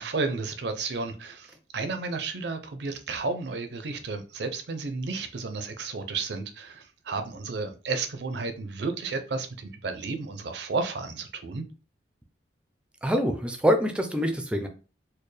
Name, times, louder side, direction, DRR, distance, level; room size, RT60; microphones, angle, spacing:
voice 1, 0.0-11.6, right 4 dB, 70° right, 0.5 m, -32 dB
voice 2, 13.0-14.7, equal, 5° right, 0.4 m, -25 dB
4.3 x 2.1 x 3.2 m
head